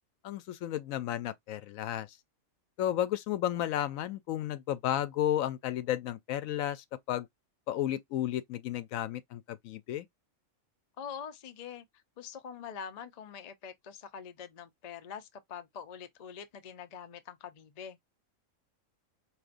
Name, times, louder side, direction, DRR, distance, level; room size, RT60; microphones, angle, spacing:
voice 1, 0.2-2.1 2.8-7.3 7.7-10.1, left 12 dB, 80° left, 1.0 m, -33 dB
voice 2, 11.0-11.8 12.2-18.0, left 7 dB, 50° left, 0.5 m, -44 dB
4.9 x 2.9 x 2.5 m
omnidirectional pair, 1.4 m